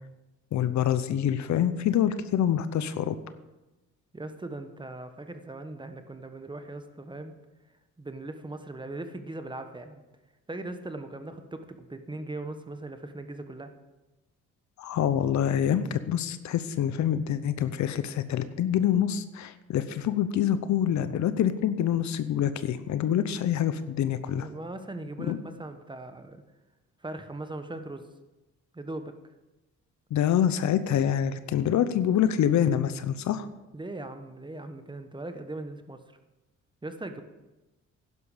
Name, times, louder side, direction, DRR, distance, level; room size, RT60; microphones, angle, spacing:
voice 1, 0.5-3.2 14.8-24.5 25.2-25.4 30.1-33.5, left 10 dB, 70° left, 13 dB, 0.8 m, -26 dB
voice 2, 4.1-7.3 8.0-10.0 10.5-13.7 24.4-26.4 27.0-28.0 28.7-29.1 33.7-36.0 36.8-37.2, right 2 dB, 15° right, 8 dB, 1.2 m, -39 dB
11.0 x 11.0 x 5.0 m, 1.1 s
cardioid pair, 90°, 30 cm